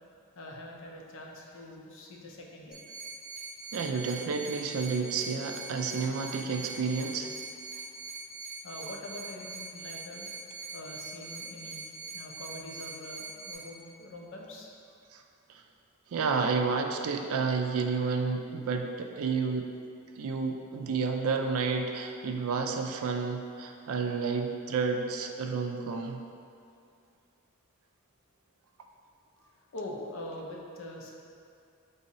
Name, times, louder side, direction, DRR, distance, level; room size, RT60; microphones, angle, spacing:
voice 1, 0.3-2.8 7.7-7.9 8.6-10.3 10.7-14.7 29.7-31.1, left 1 dB, 60° left, -1 dB, 0.5 m, -44 dB
sound 1, 2.7-13.5, right 3 dB, 15° left, 1.0 m, -42 dB
voice 2, 3.7-7.3 15.1-15.2 15.5-15.6 16.1-19.7 20.2-26.2, right 5 dB, 75° right, 4 dB, 0.3 m, -30 dB
3.8 x 2.7 x 4.1 m, 2.5 s
head